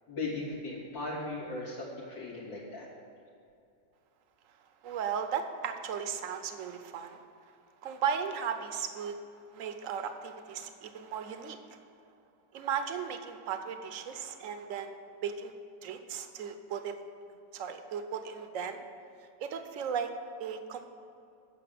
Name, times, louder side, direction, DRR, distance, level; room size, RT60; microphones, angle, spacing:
voice 1, 0.1-2.9, left 2 dB, 85° left, -5 dB, 3.6 m, -37 dB
voice 2, 4.8-7.2 7.8-9.2 9.5-11.8 12.5-15.0 15.2-15.5 15.8-16.9 17.5-18.8 19.4-20.1 20.4-20.9, right 7 dB, 55° right, 8 dB, 1.1 m, -36 dB
10.0 x 7.2 x 7.8 m, 2.6 s
omnidirectional pair, 2.0 m